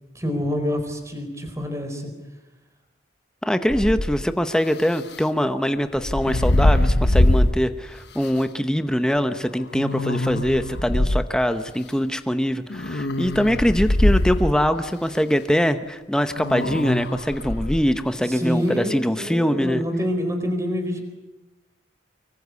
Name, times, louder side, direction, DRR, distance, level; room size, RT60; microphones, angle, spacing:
voice 1, 0.1-2.1 18.2-21.0, equal, 15° right, 6 dB, 4.2 m, -26 dB
voice 2, 3.4-19.8, equal, 5° left, 9 dB, 0.9 m, -23 dB
sound 1, 3.7-4.2 5.9-7.6 8.2-8.3 9.7-11.2 12.7-14.6 16.4-17.8, left 1 dB, 60° left, 1.1 m, -22 dB
24.5 x 23.5 x 8.3 m, 1.1 s
head